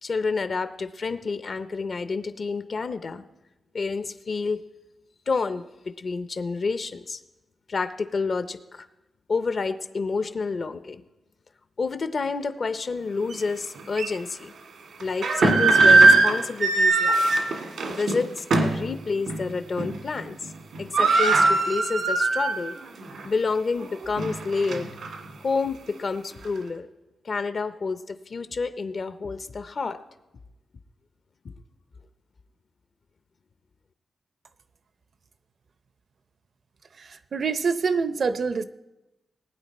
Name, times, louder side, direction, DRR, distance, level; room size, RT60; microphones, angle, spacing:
voice 1, 0.0-3.2 3.7-4.6 5.3-7.2 7.7-8.9 9.3-11.0 11.8-14.5 15.0-17.3 17.9-20.4 20.8-22.8 23.2-24.9 25.4-26.9 27.2-30.0, left 4 dB, 50° left, 11 dB, 0.6 m, -29 dB
sound 1, 13.3-13.4 14.0-14.1 15.0-18.8 19.3-19.4 19.8-20.2 20.4-20.5 20.7-22.7 23.1-23.2 23.8-25.1, right 3 dB, 80° right, 1.6 m, -20 dB
voice 2, 37.0-38.6, right 5 dB, 55° right, 13 dB, 0.6 m, -26 dB
19.5 x 9.1 x 4.2 m, 1.0 s
wide cardioid pair, 115°, 0 cm